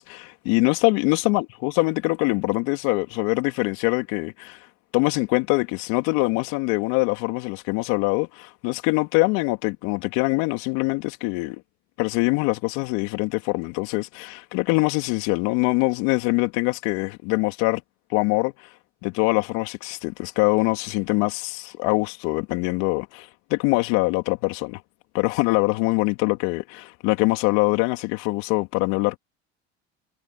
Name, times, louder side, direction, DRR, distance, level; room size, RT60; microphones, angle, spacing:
voice 1, 0.0-4.6 4.9-11.6 12.0-17.8 18.1-18.7 19.0-24.8 25.1-29.2, left 26 dB, 70° left, 3.5 m, -23 dB
hypercardioid pair, 75°, 31 cm